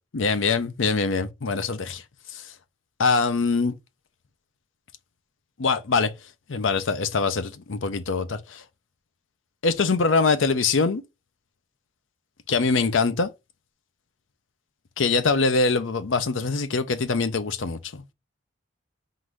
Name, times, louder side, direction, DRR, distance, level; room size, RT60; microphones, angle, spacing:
voice 1, 0.1-2.0 2.3-2.4 3.0-3.7 5.6-6.1 6.5-8.6 9.6-11.0 12.5-13.3 15.0-18.0, left 4 dB, 80° left, 0.6 m, -23 dB
3.9 x 2.6 x 4.6 m
head